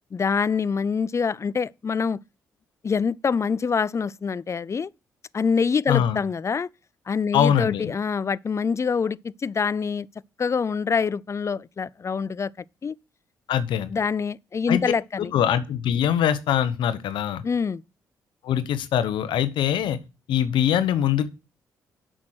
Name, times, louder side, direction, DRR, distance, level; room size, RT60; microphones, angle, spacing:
voice 1, 0.1-2.2 2.8-4.9 5.3-6.7 7.1-10.1 10.4-12.5 12.8-12.9 13.9-15.3 17.4-17.8, left 5 dB, 35° left, 0.4 m, -25 dB
voice 2, 5.9-6.2 7.3-7.9 13.5-13.9 14.7-14.8 15.3-17.4 18.4-20.0 20.3-21.3, left 10 dB, 70° left, 1.0 m, -23 dB
8.3 x 6.3 x 6.4 m
hypercardioid pair, 50°, 8 cm